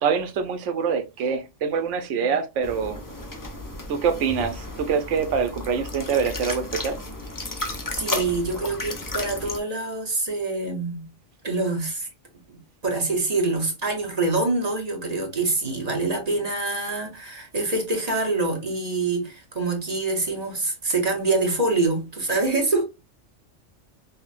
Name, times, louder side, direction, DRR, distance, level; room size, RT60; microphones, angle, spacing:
voice 1, 0.0-3.0 3.9-6.9, right 6 dB, 75° right, 0.9 m, -25 dB
sound 1, 2.6-9.6, left 2 dB, 30° left, 0.3 m, -33 dB
voice 2, 8.0-11.1 11.4-12.1 12.5-12.6 12.8-22.8, right 3 dB, 35° right, 0.9 m, -25 dB
5.3 x 2.1 x 2.4 m
omnidirectional pair, 1.3 m